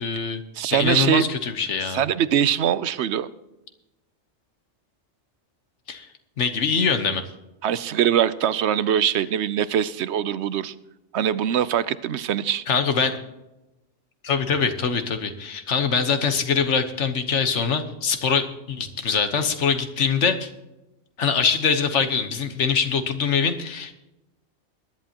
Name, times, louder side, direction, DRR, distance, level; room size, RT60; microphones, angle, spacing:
voice 1, 0.0-0.4 0.7-2.0 5.9-6.1 6.4-7.2 12.7-13.2 14.2-20.5 21.2-23.9, left 6 dB, 85° left, 8 dB, 1.4 m, -23 dB
voice 2, 0.5-1.2 1.9-3.3 7.6-10.7 11.1-12.6, right 9 dB, 75° right, 16 dB, 0.9 m, -22 dB
21.5 x 11.0 x 2.9 m, 0.97 s
omnidirectional pair, 1.2 m